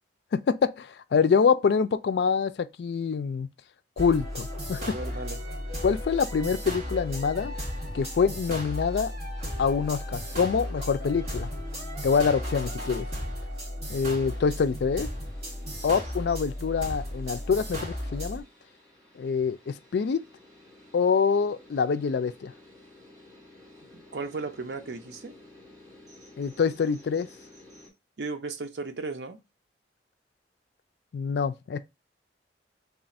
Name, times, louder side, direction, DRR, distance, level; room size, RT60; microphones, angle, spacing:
voice 1, 0.3-3.5 4.0-4.8 5.8-7.5 7.9-9.1 9.6-11.5 12.0-13.1 13.9-15.1 15.8-18.4 19.2-20.2 20.9-22.5 26.4-27.3 31.1-31.8, left 5 dB, 70° left, 0.3 m, -25 dB
sound 1, 4.0-18.4, equal, 40° right, 1.7 m, -35 dB
voice 2, 4.8-5.4 23.9-25.3 28.2-29.4, right 3 dB, 75° right, 0.6 m, -35 dB
sound 2, 14.0-27.9, left 1 dB, 20° right, 1.5 m, -54 dB
3.3 x 2.4 x 4.1 m
head